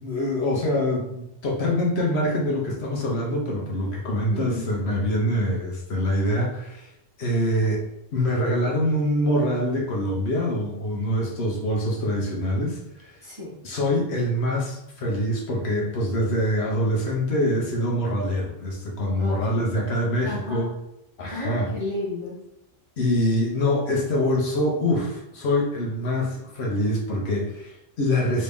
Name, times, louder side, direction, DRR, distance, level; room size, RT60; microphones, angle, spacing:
voice 1, 0.0-6.9 7.2-7.8 8.1-13.1 13.6-20.7 21.2-21.7 23.0-28.4, left 1 dB, 65° left, -2 dB, 1.0 m, -25 dB
voice 2, 4.3-4.6 13.2-13.5 19.1-19.7 20.2-20.7 21.3-22.4, left 2 dB, 30° right, -6 dB, 0.7 m, -33 dB
3.1 x 2.7 x 3.4 m, 0.82 s
omnidirectional pair, 1.3 m